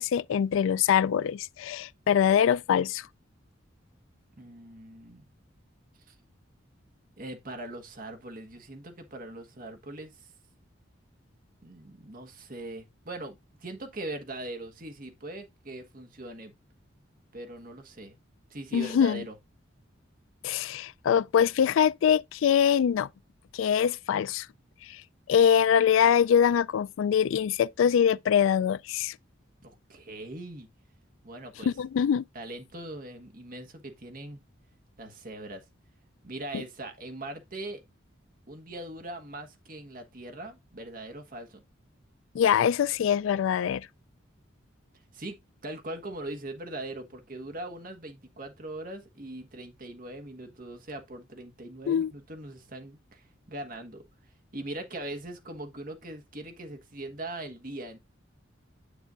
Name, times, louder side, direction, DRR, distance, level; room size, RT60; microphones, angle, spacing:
voice 1, 0.0-3.1 18.7-19.2 20.4-23.1 23.5-24.5 24.9-25.0 25.3-29.1 31.7-32.2 42.3-43.9 51.9-52.1, left 8 dB, 80° left, 0.3 m, -23 dB
voice 2, 4.4-5.2 6.1-6.2 7.2-10.3 11.6-16.5 17.3-18.2 18.5-19.4 29.6-30.7 31.2-31.7 32.3-34.4 35.0-35.6 36.2-37.8 38.5-41.6 45.1-54.0 54.5-58.0, right 1 dB, 45° right, 1.3 m, -41 dB
8.1 x 6.7 x 2.4 m
head